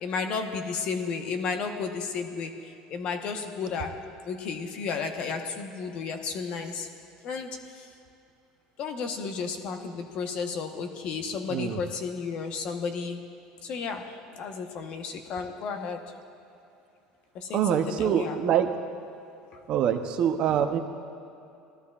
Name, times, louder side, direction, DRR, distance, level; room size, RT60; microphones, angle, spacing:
voice 1, 0.0-4.0 4.2-6.9 7.2-7.9 8.8-13.2 13.6-16.0 17.3-18.4 19.5-19.6, left 5 dB, 50° left, 5 dB, 1.1 m, -33 dB
voice 2, 17.5-18.7 19.7-20.8, right 9 dB, 50° right, 7 dB, 0.8 m, -25 dB
19.0 x 13.0 x 2.5 m, 2.8 s
supercardioid pair, 115°, 2 cm